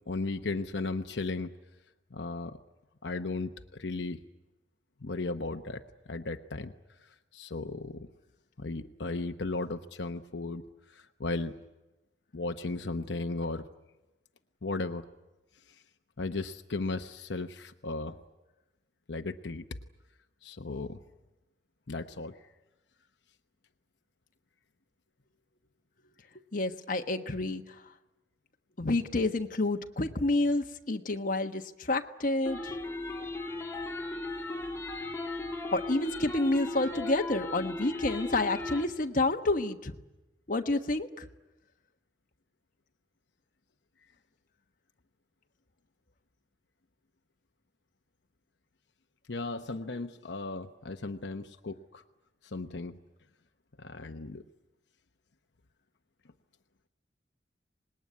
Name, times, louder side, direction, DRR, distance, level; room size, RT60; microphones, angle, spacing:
voice 1, 0.1-1.6 2.1-2.6 3.0-4.2 5.0-5.8 6.1-6.7 7.3-8.1 8.6-10.6 10.9-11.5 12.3-13.7 14.6-15.0 16.2-18.2 19.1-19.6 20.4-21.0 21.9-22.4 49.3-52.0 52.4-53.0 53.8-54.4, left 3 dB, 75° left, 6 dB, 0.9 m, -35 dB
voice 2, 26.5-27.6 28.8-32.7 35.7-39.9 40.5-41.2, left 2 dB, 50° left, 5 dB, 1.3 m, -29 dB
sound 1, 32.5-38.9, left 2 dB, 15° left, 2.0 m, -37 dB
26.0 x 20.0 x 9.6 m, 1.1 s
head